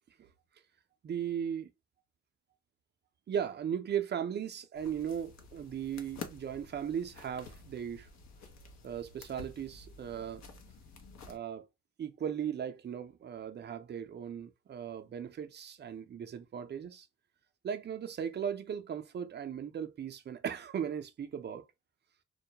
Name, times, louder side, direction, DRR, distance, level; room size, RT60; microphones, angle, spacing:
voice 1, 1.0-1.7 3.3-8.1 8.8-10.4 11.3-11.7 12.0-17.1 17.6-21.6, right 8 dB, 35° right, 0.4 m, -37 dB
sound 1, 4.8-11.4, left 4 dB, 60° left, 0.7 m, -50 dB
2.2 x 2.1 x 2.8 m
cardioid pair, 90°, 30 cm